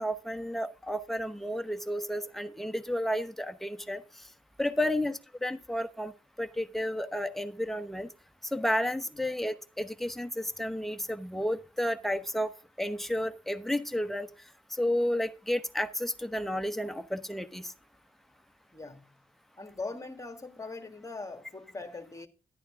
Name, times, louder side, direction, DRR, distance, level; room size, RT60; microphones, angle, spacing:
voice 1, 0.0-4.0 4.6-6.1 6.4-8.1 8.5-12.5 12.8-14.3 14.7-17.7, left 1 dB, ahead, 0.9 m, -32 dB
voice 2, 18.7-19.2 19.6-22.3, left 3 dB, 20° left, 1.6 m, -41 dB
11.0 x 9.1 x 3.6 m
cardioid pair, 65°, 15 cm